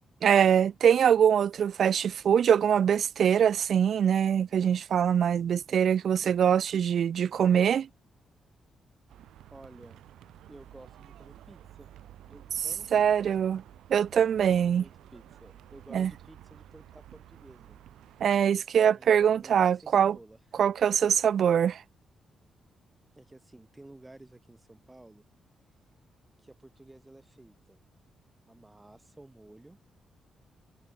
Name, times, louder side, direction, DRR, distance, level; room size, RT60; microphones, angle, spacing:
voice 1, 0.2-7.9 12.9-13.6 13.9-14.8 15.9-16.1 18.2-20.2 20.6-21.8, right 8 dB, 65° right, 0.4 m, -23 dB
sound 1, 9.1-18.5, right 12 dB, 90° right, 1.2 m, -52 dB
voice 2, 9.5-10.0 10.5-11.9 12.2-13.3 14.5-17.8 18.9-20.6 23.1-25.2 26.4-27.8 28.5-29.8, right 2 dB, 15° right, 5.5 m, -53 dB
cardioid pair, 80°, 0 cm